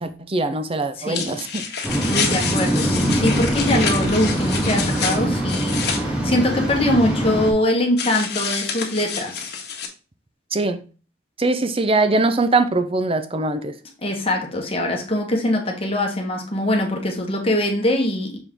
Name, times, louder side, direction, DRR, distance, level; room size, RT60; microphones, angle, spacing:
voice 1, 0.0-1.7 10.5-10.8 11.4-13.7, right 3 dB, 35° right, 0.7 m, -22 dB
voice 2, 1.0-1.4 2.0-9.5 14.0-18.4, left 1 dB, 35° left, 1.6 m, -23 dB
sound 1, 1.1-6.0 8.0-9.9, left 6 dB, 70° left, 1.6 m, -28 dB
Waves surf, 1.8-7.5, right 1 dB, 5° right, 1.7 m, -23 dB
6.9 x 4.3 x 3.7 m
head